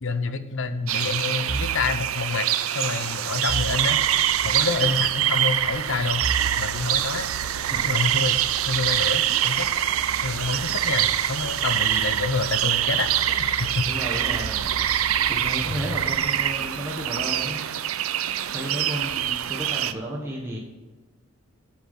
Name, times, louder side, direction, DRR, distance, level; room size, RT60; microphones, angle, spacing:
voice 1, 0.0-4.0 4.4-6.3 6.6-7.3 7.8-8.4 8.7-9.7 10.2-13.9 15.7-16.0, left 4 dB, 65° left, 10 dB, 0.9 m, -28 dB
voice 2, 0.7-1.0 7.7-7.9 12.5-12.6 13.9-14.9 15.3-17.8 18.5-20.6, equal, 15° right, -3 dB, 1.5 m, -33 dB
sound 1, 0.9-19.9, right 11 dB, 90° right, 0.6 m, -25 dB
sound 2, 1.5-1.9 3.5-4.4 6.2-17.6, right 3 dB, 65° right, 1.9 m, -38 dB
8.6 x 8.0 x 7.3 m, 1.2 s
head